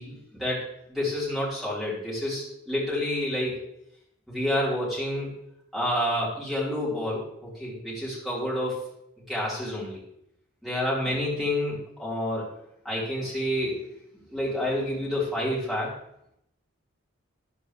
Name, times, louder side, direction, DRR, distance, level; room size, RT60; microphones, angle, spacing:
voice 1, 0.0-3.6 4.3-5.3 5.7-8.9 9.3-10.0 10.6-12.5 12.8-13.8 14.3-15.9, left 1 dB, ahead, -7 dB, 4.1 m, -29 dB
13.5 x 9.4 x 3.3 m, 0.77 s
head